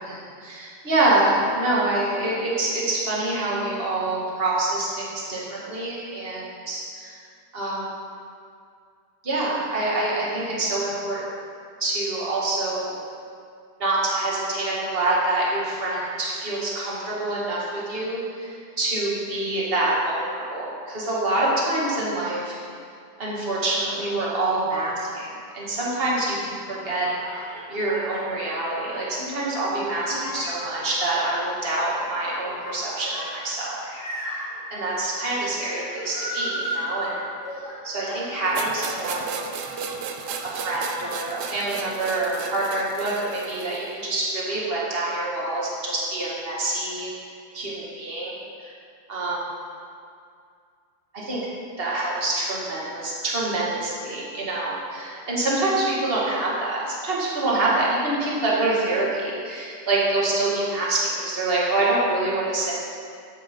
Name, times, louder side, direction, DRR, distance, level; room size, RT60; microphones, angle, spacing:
voice 1, 0.0-7.2 7.5-7.8 9.2-11.2 11.8-13.0 13.8-22.6 23.2-25.3 25.5-27.4 27.7-33.8 34.3-34.4 34.7-37.1 37.5-39.4 40.4-47.1 47.5-48.7 49.1-49.4 51.3-51.4 51.8-62.7, right 2 dB, 35° right, -6 dB, 2.2 m, -26 dB
sound 1, 27.1-39.3 39.6-40.5, equal, 85° left, 2.7 m, -36 dB
sound 2, 38.5-43.9, right 6 dB, 80° right, 1.3 m, -34 dB
12.0 x 9.5 x 3.8 m, 2.3 s
omnidirectional pair, 1.7 m